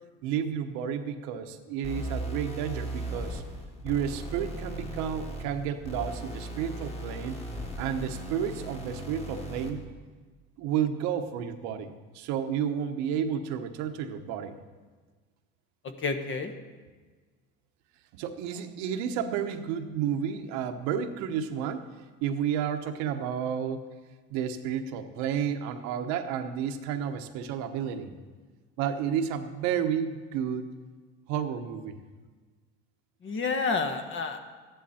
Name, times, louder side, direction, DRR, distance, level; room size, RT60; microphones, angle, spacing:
voice 1, 0.2-3.4 3.8-7.4 7.8-9.8 10.6-14.6 18.1-21.9 22.2-23.9 24.3-28.1 28.8-30.6 31.3-32.0, right 8 dB, 80° right, 7 dB, 1.0 m, -31 dB
sound 1, 1.8-9.8, right 1 dB, 20° left, 2.0 m, -37 dB
voice 2, 15.8-16.5 33.2-34.4, left 4 dB, 40° left, 7 dB, 1.3 m, -29 dB
13.5 x 10.5 x 4.3 m, 1.4 s
supercardioid pair, 95°, 29 cm